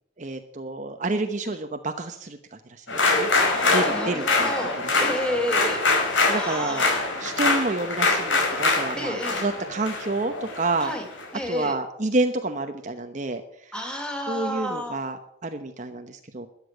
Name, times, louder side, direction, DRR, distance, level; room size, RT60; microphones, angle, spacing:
voice 1, 0.2-2.4 2.8-3.3 3.7-5.1 6.3-6.9 7.1-10.9 11.5-13.4 14.3-16.5, right 2 dB, 40° right, 7 dB, 0.9 m, -29 dB
sound 1, 2.9-11.2, left 3 dB, 70° left, 5.1 m, -24 dB
voice 2, 3.4-4.7 5.0-5.8 6.3-7.0 9.0-9.4 10.8-11.0 11.3-11.8 13.7-15.0, equal, 5° left, 3 dB, 2.7 m, -31 dB
13.0 x 8.5 x 9.6 m, 0.74 s
head